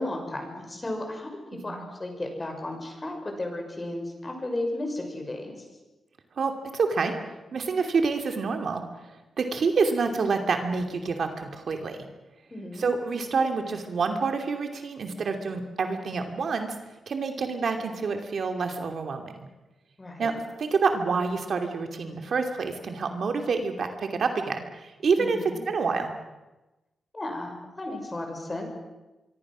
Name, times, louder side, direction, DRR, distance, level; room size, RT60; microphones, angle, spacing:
voice 1, 0.0-5.6 12.5-12.9 20.0-20.3 25.2-25.6 27.1-28.7, left 1 dB, 25° left, 3 dB, 6.2 m, -34 dB
voice 2, 6.4-7.1 7.5-8.8 9.4-12.0 12.7-16.7 17.1-19.3 20.2-20.3 20.6-25.4 25.7-26.1, right 4 dB, 60° right, 5 dB, 2.7 m, -27 dB
25.0 x 24.5 x 6.3 m, 1.1 s
wide cardioid pair, 110°, 0 cm